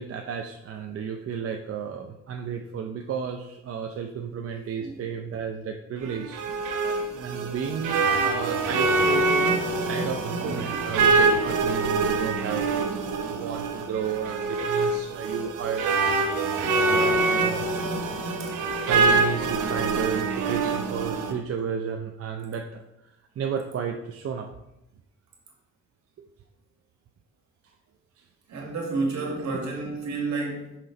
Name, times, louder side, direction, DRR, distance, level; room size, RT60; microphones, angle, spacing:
voice 1, 0.0-6.4 7.1-9.5 9.9-15.9 16.8-17.6 18.9-22.8 23.4-24.5 29.4-30.0, right 7 dB, 50° right, 3 dB, 0.6 m, -32 dB
sound 1, 6.0-21.3, right 3 dB, 85° right, 1.0 m, -25 dB
voice 2, 10.4-11.0 18.4-18.5 28.5-30.8, right 3 dB, 65° right, 0 dB, 2.0 m, -31 dB
6.0 x 3.9 x 5.1 m, 0.87 s
cardioid pair, 90°, 30 cm